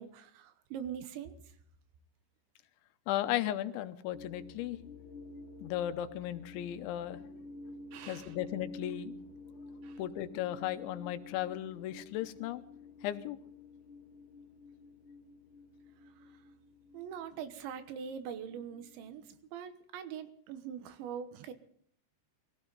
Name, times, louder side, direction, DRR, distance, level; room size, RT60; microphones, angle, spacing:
voice 1, 0.0-1.4 7.9-8.4 9.8-10.0 16.9-21.5, right 8 dB, 80° right, 10 dB, 3.5 m, -43 dB
voice 2, 3.1-4.8 5.6-7.2 8.1-9.1 10.0-12.6 13.0-13.4, left 13 dB, 85° left, 11 dB, 3.2 m, -35 dB
sound 1, 4.1-19.4, left 2 dB, 40° left, 2.1 m, -51 dB
22.5 x 16.0 x 4.0 m, 0.63 s
omnidirectional pair, 5.2 m